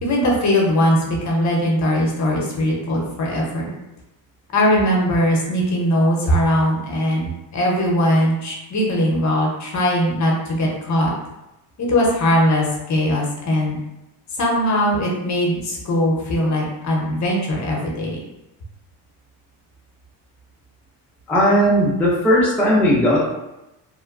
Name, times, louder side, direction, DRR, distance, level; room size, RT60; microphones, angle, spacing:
voice 1, 0.0-3.7 4.5-11.1 11.8-13.8 14.4-18.2, equal, 40° left, -2 dB, 0.8 m, -20 dB
voice 2, 21.3-23.3, equal, 5° left, -6 dB, 0.5 m, -17 dB
3.0 x 2.1 x 2.4 m, 0.91 s
cardioid pair, 110°, 44 cm